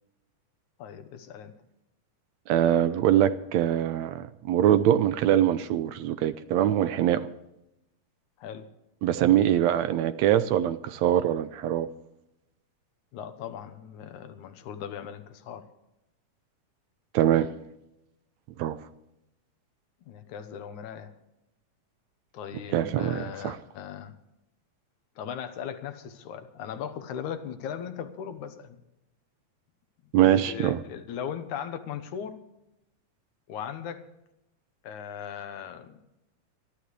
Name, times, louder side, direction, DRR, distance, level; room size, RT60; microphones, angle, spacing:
voice 1, 0.8-1.5 8.4-8.7 13.1-15.6 20.1-21.1 22.3-24.1 25.2-28.8 30.3-32.4 33.5-34.0 34.8-36.0, left 8 dB, 85° left, 9 dB, 2.5 m, -38 dB
voice 2, 2.5-7.3 9.0-11.9 17.1-17.5 18.6-18.8 22.7-23.6 30.1-30.8, right 11 dB, 75° right, 12 dB, 1.8 m, -23 dB
26.0 x 11.5 x 3.3 m, 0.88 s
omnidirectional pair, 3.4 m